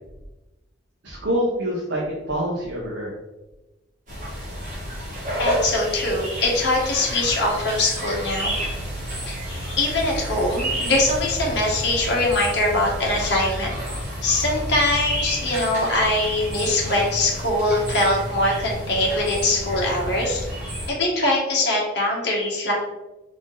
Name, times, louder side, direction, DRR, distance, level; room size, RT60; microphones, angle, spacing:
voice 1, 1.0-3.1, equal, 65° right, -4 dB, 0.9 m, -26 dB
sound 1, 4.1-20.9, equal, 40° right, 1.5 m, -30 dB
voice 2, 5.4-8.5 9.3-13.8 14.2-20.5 20.9-22.7, left 2 dB, 55° left, -2 dB, 1.3 m, -22 dB
3.8 x 3.5 x 3.7 m, 1.1 s
head